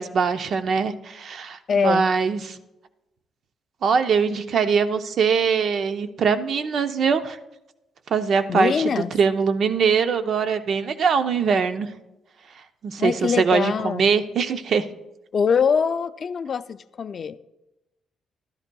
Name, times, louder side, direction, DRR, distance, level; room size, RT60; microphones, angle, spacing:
voice 1, 0.0-2.6 3.8-7.4 8.1-8.7 9.1-11.9 12.8-14.9, right 6 dB, 60° right, 10 dB, 0.6 m, -22 dB
voice 2, 1.7-2.1 8.5-9.1 13.0-14.1 15.3-17.4, left 6 dB, 50° left, 13 dB, 0.4 m, -23 dB
12.0 x 11.0 x 2.3 m, 0.96 s
cardioid pair, 90°, 0 cm